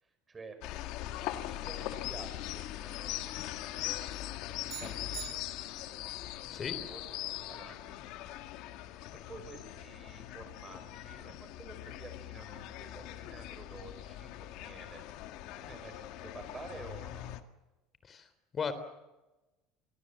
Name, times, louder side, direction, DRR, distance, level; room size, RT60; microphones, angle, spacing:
voice 1, 0.0-3.3 3.9-5.4 6.5-8.1 9.3-15.0 15.6-17.3, right 3 dB, 20° right, 7 dB, 5.9 m, -51 dB
sound 1, 0.6-17.4, left 14 dB, 65° left, 1.8 m, -41 dB
sound 2, 4.7-6.1, right 16 dB, 55° right, 1.7 m, -46 dB
voice 2, 18.0-18.7, left 6 dB, 25° left, 12 dB, 3.5 m, -37 dB
28.0 x 22.5 x 7.7 m, 1.1 s
cardioid pair, 140°, 0 cm